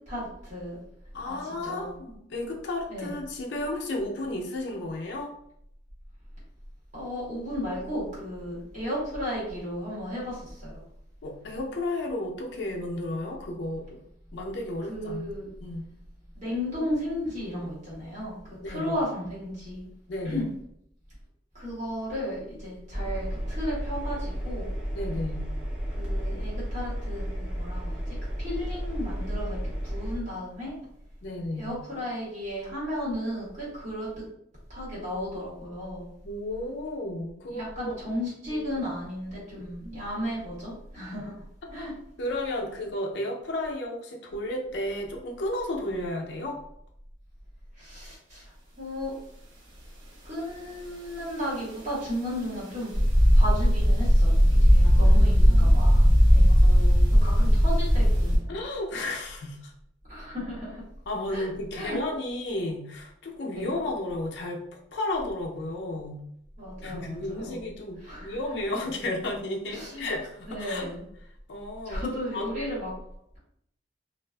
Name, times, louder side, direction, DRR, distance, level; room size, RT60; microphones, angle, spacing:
voice 1, 0.1-0.8 1.2-1.9 2.9-3.1 6.9-10.8 14.9-15.5 16.3-19.9 20.2-20.5 21.5-24.7 25.9-30.7 31.6-34.1 34.7-36.1 37.5-41.3 41.7-41.9 47.8-49.1 50.2-52.9 53.3-56.6 57.2-58.6 60.1-60.8 61.3-61.5 61.7-62.0 63.5-63.7 66.6-67.6 68.0-68.4 69.7-70.1 70.5-71.0 71.8-72.9, equal, 40° right, -7 dB, 1.3 m, -34 dB
voice 2, 1.1-5.3 11.2-13.8 14.3-15.3 15.6-15.8 18.6-18.9 20.1-20.5 24.9-25.5 31.2-31.7 36.2-38.0 38.5-38.7 42.2-46.6 54.8-55.2 55.4-55.9 56.5-57.2 58.5-59.7 61.1-64.6 64.9-66.2 66.8-70.9 71.5-72.5, left 1 dB, 65° left, 0 dB, 0.5 m, -33 dB
Engine, 22.9-30.2, equal, 5° right, 0.6 m, -32 dB
sound 1, 52.9-58.4, equal, 80° right, 0.8 m, -18 dB
2.4 x 2.4 x 2.2 m, 0.72 s
head